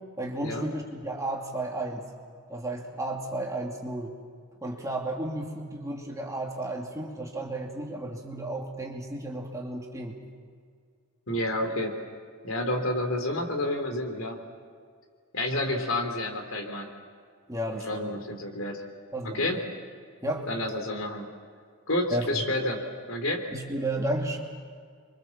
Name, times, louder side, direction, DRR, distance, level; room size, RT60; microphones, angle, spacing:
voice 1, 0.2-2.1 2.5-4.1 4.6-10.2 17.5-18.2 19.1-19.6 20.2-20.5 22.1-22.4 23.5-24.4, right 1 dB, 15° right, 0 dB, 2.7 m, -33 dB
voice 2, 11.3-11.9 12.4-14.4 15.3-16.9 17.7-18.8 19.2-19.6 20.5-21.3 21.9-22.8 23.1-23.4, left 1 dB, 60° left, 4 dB, 3.5 m, -29 dB
28.0 x 24.5 x 7.3 m, 2.1 s
head